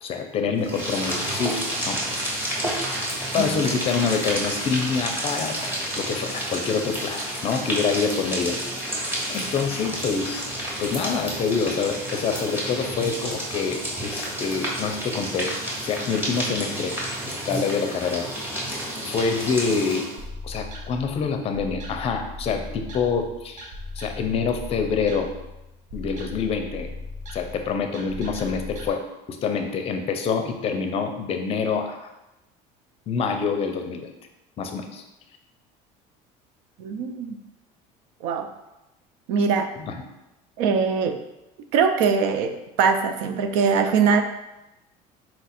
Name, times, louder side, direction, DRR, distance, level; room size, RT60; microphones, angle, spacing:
voice 1, 0.0-2.4 3.3-8.9 9.3-10.5 10.8-15.5 15.8-17.0 17.2-18.3 19.1-20.1 20.4-23.7 24.0-25.3 25.9-26.9 27.3-29.0 29.3-32.1 33.1-34.1 34.6-35.0 39.8-40.0, left 5 dB, 35° left, 6 dB, 0.5 m, -26 dB
sound 1, 0.6-20.2, right 1 dB, 10° right, 1.0 m, -30 dB
sound 2, 20.2-28.9, left 2 dB, 45° right, 0.7 m, -38 dB
voice 2, 36.8-37.4 38.2-38.5 39.3-39.7 40.6-41.2 41.7-44.2, right 5 dB, 90° right, 8 dB, 0.5 m, -22 dB
4.3 x 2.4 x 4.2 m, 0.95 s
cardioid pair, 140°, 17 cm